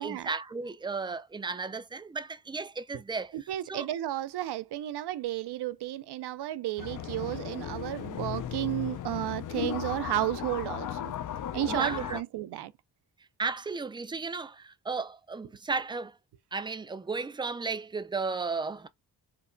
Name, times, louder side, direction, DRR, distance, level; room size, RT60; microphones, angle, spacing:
voice 1, 0.0-3.3 3.7-3.9 11.7-12.2 13.4-16.2 16.5-18.9, right 4 dB, 15° right, 0.3 m, -34 dB
voice 2, 3.3-11.1 11.5-12.7, right 14 dB, 75° right, 0.5 m, -33 dB
sound 1, 6.8-12.2, left 10 dB, 50° left, 0.5 m, -36 dB
4.5 x 2.1 x 2.5 m
cardioid pair, 70°, 40 cm